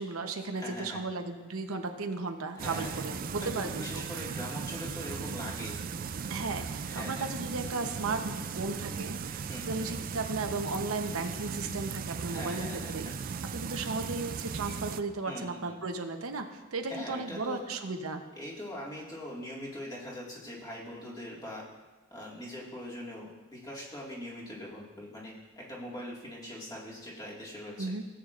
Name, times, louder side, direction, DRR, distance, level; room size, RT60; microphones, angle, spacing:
voice 1, 0.0-4.3 6.3-13.1 13.5-18.2 27.8-28.0, right 3 dB, 90° right, 5 dB, 0.9 m, -35 dB
voice 2, 0.5-1.0 2.5-3.1 3.4-5.8 6.8-7.3 9.5-9.9 12.2-13.3 14.6-14.8 15.3-15.8 16.9-17.6 18.4-21.6 22.1-27.9, left 1 dB, 20° left, -4 dB, 2.0 m, -42 dB
sound 1, 2.6-15.0, right 5 dB, 40° right, 0.3 m, -37 dB
17.0 x 8.2 x 2.5 m, 1.2 s
head